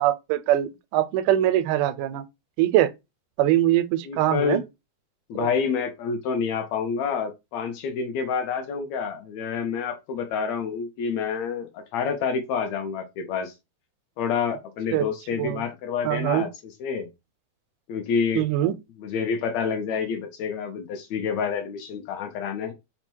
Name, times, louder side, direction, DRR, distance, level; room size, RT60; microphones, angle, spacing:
voice 1, 0.0-2.2 2.6-2.9 3.4-4.6 5.4-5.5 14.9-15.1 15.4-15.6 16.1-16.5 18.4-18.7, right 13 dB, 85° right, 2.1 m, -22 dB
voice 2, 4.0-4.6 5.3-13.5 14.2-17.1 17.9-18.5 19.0-22.7, left 6 dB, 75° left, 1.8 m, -28 dB
5.4 x 2.2 x 4.5 m
omnidirectional pair, 3.5 m